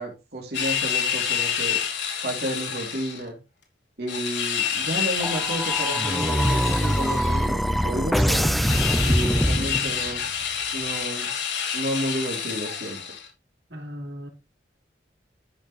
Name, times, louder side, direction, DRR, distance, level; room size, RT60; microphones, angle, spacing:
voice 1, 0.0-1.8 2.2-3.4 4.0-8.5 9.0-10.3 10.7-11.3 11.7-13.0, right 1 dB, 60° right, 2.9 m, -31 dB
sound 1, 0.5-3.2 4.1-7.5 8.6-13.3, left 8 dB, 85° left, 3.4 m, -28 dB
sound 2, 5.2-10.2, equal, ahead, 0.4 m, -23 dB
voice 2, 13.7-14.3, equal, 80° right, 3.6 m, -37 dB
13.5 x 6.7 x 3.1 m
head